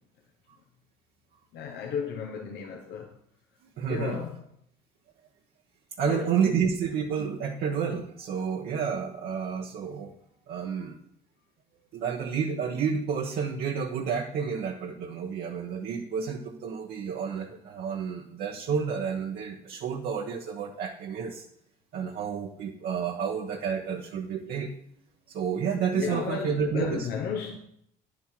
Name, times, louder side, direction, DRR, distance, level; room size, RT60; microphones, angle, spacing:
voice 1, 1.5-3.2 3.9-4.4 6.0-6.3 25.9-27.6, left 7 dB, 80° left, 1.2 m, -33 dB
voice 2, 3.8-4.2 6.0-10.1 10.5-10.9 11.9-21.4 21.9-24.7 25.3-27.1, right 6 dB, 70° right, 1.1 m, -30 dB
10.0 x 7.9 x 4.5 m
cardioid pair, 110°, 17 cm